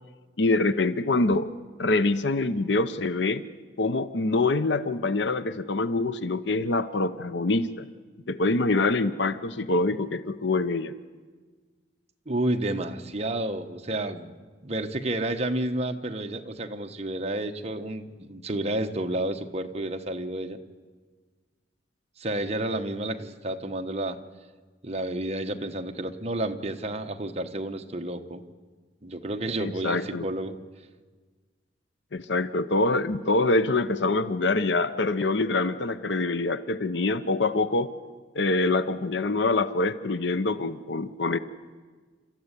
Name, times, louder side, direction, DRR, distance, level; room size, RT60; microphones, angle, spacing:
voice 1, 0.4-1.5 1.8-3.4 3.8-7.9 8.3-10.9 29.6-30.3 32.1-37.9 38.3-41.4, left 2 dB, 70° left, 13 dB, 0.8 m, -25 dB
voice 2, 12.3-14.3 14.6-20.6 22.2-24.2 24.8-28.4 29.0-30.6, right 1 dB, 35° right, 5 dB, 1.3 m, -30 dB
28.5 x 14.0 x 9.9 m, 1.4 s
head